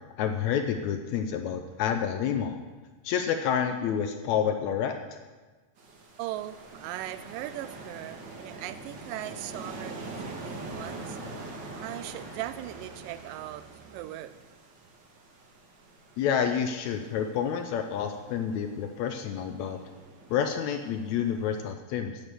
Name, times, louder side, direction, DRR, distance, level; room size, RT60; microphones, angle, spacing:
voice 1, 0.2-2.6 3.0-4.9 16.2-19.8 20.3-22.2, left 8 dB, 80° left, 6 dB, 1.7 m, -29 dB
sound 1, 5.8-21.7, right 2 dB, 55° right, 1.2 m, -44 dB
voice 2, 6.2-11.2 11.8-14.3, right 14 dB, 85° right, 13 dB, 2.2 m, -39 dB
9.4 x 8.2 x 6.8 m, 1.3 s
omnidirectional pair, 3.9 m